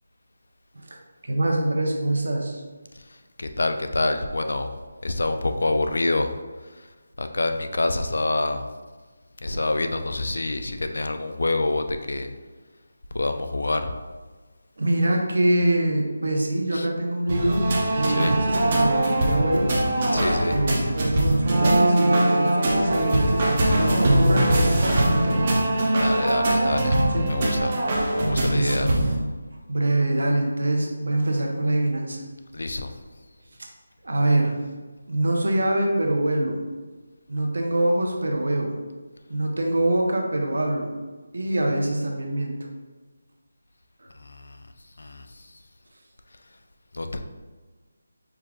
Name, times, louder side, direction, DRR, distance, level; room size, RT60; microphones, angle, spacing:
voice 1, 1.2-2.6 14.8-19.7 20.4-25.5 27.1-27.6 28.4-29.1 29.7-32.2 34.0-34.6 35.1-36.6 37.3-38.8 39.3-40.9 41.3-42.6 44.0-44.1, right 1 dB, 70° right, 1 dB, 0.8 m, -24 dB
voice 2, 3.4-4.7 5.0-6.3 7.2-8.7 9.4-12.3 13.1-13.9 16.7-16.9 18.0-18.3 20.1-20.6 26.0-27.7 28.1-28.9 32.5-32.9 44.5-44.6 45.0-45.2 46.9-47.2, left 2 dB, 70° left, 7 dB, 0.4 m, -26 dB
sound 1, 17.3-29.2, right 1 dB, 25° right, 0.5 m, -21 dB
4.6 x 2.4 x 3.4 m, 1.3 s
figure-of-eight pair, 180°, 0 cm